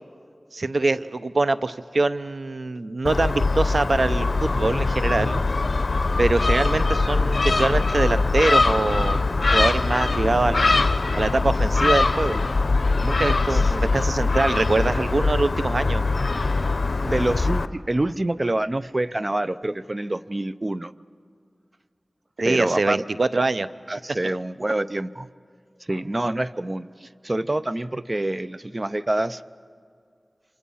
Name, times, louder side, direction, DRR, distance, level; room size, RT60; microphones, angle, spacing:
voice 1, 0.5-5.4 6.2-9.2 9.5-10.8 11.1-12.4 13.0-16.0 16.7-16.8 22.4-23.7, right 3 dB, 75° right, 13 dB, 0.6 m, -24 dB
Gull seagull, 3.1-17.7, left 3 dB, 75° left, 0.6 m, -22 dB
voice 2, 16.9-20.9 22.4-23.0 23.9-25.3 25.9-29.4, right 1 dB, 40° right, 14 dB, 0.6 m, -26 dB
27.5 x 26.0 x 5.6 m, 2.2 s
wide cardioid pair, 50°, 0 cm